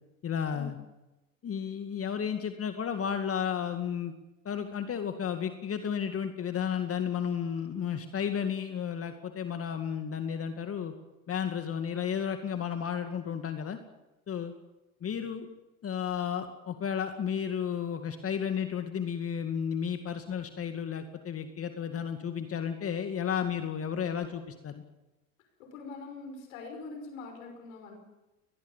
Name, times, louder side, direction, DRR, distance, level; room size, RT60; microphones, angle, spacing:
voice 1, 0.2-0.8 1.4-4.1 4.4-10.9 11.3-13.8 14.3-14.5 15.0-15.5 15.8-24.8, left 8 dB, 35° left, 7 dB, 2.2 m, -33 dB
voice 2, 25.6-28.0, left 3 dB, 70° left, 5 dB, 5.5 m, -43 dB
22.0 x 20.0 x 7.3 m, 1.0 s
hypercardioid pair, 80°, 41 cm